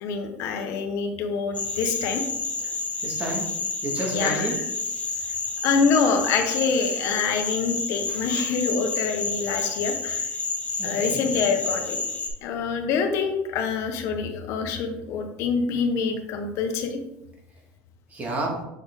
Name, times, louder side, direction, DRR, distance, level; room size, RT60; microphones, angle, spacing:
voice 1, 0.0-2.2 4.1-4.5 5.6-10.3 10.8-12.0 12.4-17.0, left 5 dB, 65° left, 5 dB, 1.0 m, -26 dB
sound 1, 1.5-12.3, left 4 dB, 25° left, 1.3 m, -30 dB
voice 2, 3.0-3.5 3.8-4.6 8.1-8.2 10.8-11.5 18.1-18.6, right 2 dB, 30° right, -1 dB, 2.1 m, -30 dB
6.4 x 3.9 x 3.9 m, 0.91 s
supercardioid pair, 95°, 5 cm